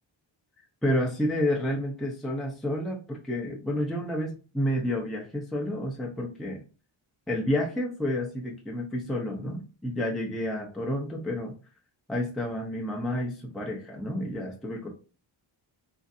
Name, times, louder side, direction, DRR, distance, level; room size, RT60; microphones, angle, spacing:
voice 1, 0.8-6.6 7.3-11.6 12.1-14.9, left 1 dB, ahead, -1 dB, 0.5 m, -30 dB
3.1 x 2.7 x 2.5 m, 0.35 s
wide cardioid pair, 110°, 48 cm